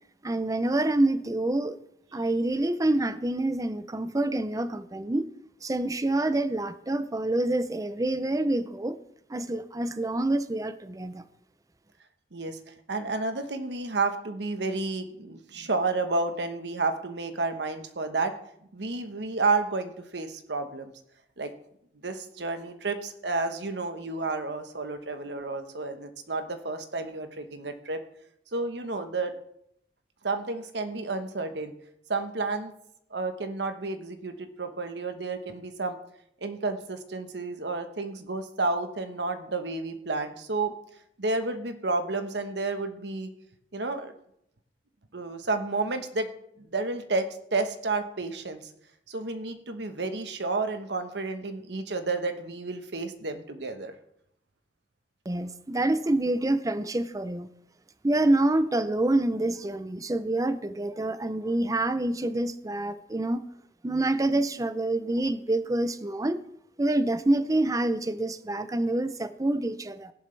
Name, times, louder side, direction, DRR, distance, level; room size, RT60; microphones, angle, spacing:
voice 1, 0.2-1.8 2.1-5.3 5.6-9.0 9.3-11.3 55.3-57.5 58.0-63.4 63.8-66.4 66.8-70.1, right 2 dB, 20° right, 0.5 m, -27 dB
voice 2, 12.3-18.3 18.7-20.9 21.4-21.5 22.0-28.0 28.5-29.4 30.2-31.8 32.1-32.7 33.1-36.0 36.4-40.7 41.2-43.3 43.7-44.1 45.1-46.3 46.6-48.7 49.1-54.0, right 3 dB, 75° right, 1.2 m, -31 dB
16.0 x 11.0 x 3.3 m
head